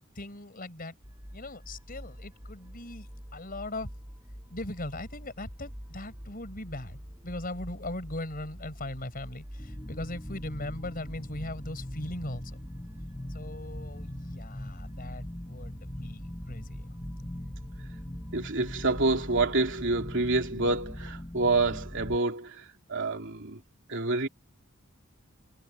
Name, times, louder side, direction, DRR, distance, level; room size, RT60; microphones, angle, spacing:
voice 1, 0.1-0.9 1.3-3.9 4.5-12.6 13.3-16.8, left 1 dB, 45° left, 4.9 m, -39 dB
sound 1, 1.0-20.5, equal, 15° right, 7.7 m, -46 dB
sound 2, 9.6-22.2, left 1 dB, 15° left, 1.4 m, -41 dB
voice 2, 18.3-22.6 22.9-23.6 23.9-24.3, right 3 dB, 60° right, 3.0 m, -27 dB
head